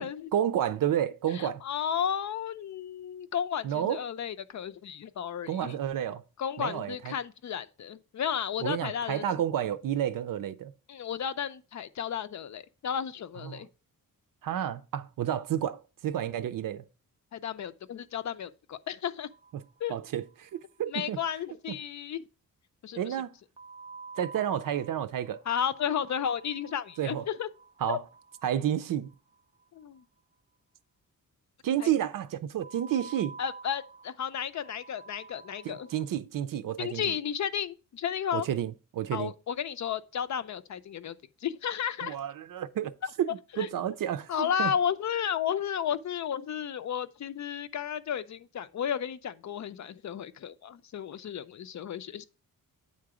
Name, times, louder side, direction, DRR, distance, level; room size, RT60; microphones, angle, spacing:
voice 1, 0.0-1.6 3.6-4.0 5.5-6.2 6.6-7.1 8.6-10.7 13.4-13.6 14.4-16.8 19.5-19.6 19.9-21.2 21.7-21.8 23.0-23.4 24.2-25.4 27.0-27.3 27.8-28.0 28.4-29.1 31.6-33.3 35.6-37.1 38.3-39.3 42.0-42.9 43.2-44.7, right 10 dB, 70° right, 0.6 m, -31 dB
voice 2, 1.3-5.7 6.4-9.2 10.9-13.7 17.3-19.3 19.8-20.0 20.9-22.2 22.8-23.2 25.5-27.5 27.9-28.0 29.8-30.0 31.8-31.9 33.4-35.9 36.8-38.5 39.1-42.1 43.0-43.1 43.5-43.7 44.3-52.2, left 8 dB, 55° left, 0.6 m, -33 dB
sound 1, 19.3-20.3 20.6-20.7 20.9-21.0 23.6-29.7 32.6-36.2, right 4 dB, 15° right, 0.5 m, -49 dB
8.6 x 3.8 x 4.8 m
wide cardioid pair, 145°, 34 cm